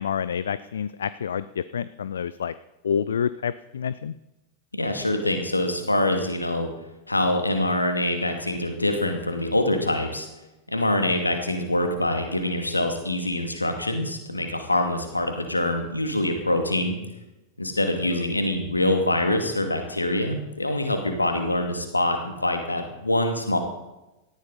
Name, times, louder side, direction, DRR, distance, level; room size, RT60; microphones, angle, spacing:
voice 1, 0.0-2.5 2.8-4.1 18.1-18.3, left 7 dB, 65° left, 16 dB, 0.4 m, -28 dB
voice 2, 4.8-6.7 7.1-10.3 10.7-17.0 17.6-23.6, left 1 dB, 85° left, 5 dB, 2.4 m, -25 dB
18.5 x 14.0 x 4.1 m, 0.98 s
figure-of-eight pair, 90°, 0 cm